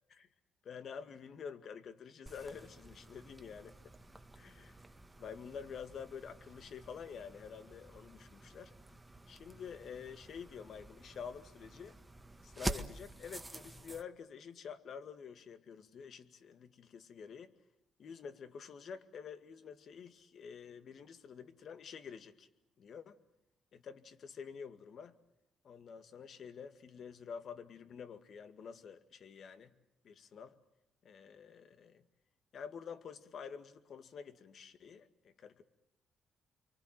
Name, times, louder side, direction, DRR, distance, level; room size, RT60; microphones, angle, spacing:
voice 1, 0.6-3.8 4.4-4.8 5.2-8.7 9.3-12.0 12.4-17.5 18.0-22.5 22.8-23.2 23.7-25.1 25.6-29.7 30.0-30.6 31.0-32.0 32.5-35.6, left 6 dB, 60° left, 10 dB, 2.1 m, -48 dB
sound 1, 2.3-14.0, right 1 dB, 10° right, 1.6 m, -48 dB
29.0 x 24.0 x 7.6 m, 0.88 s
cardioid pair, 90°, 0 cm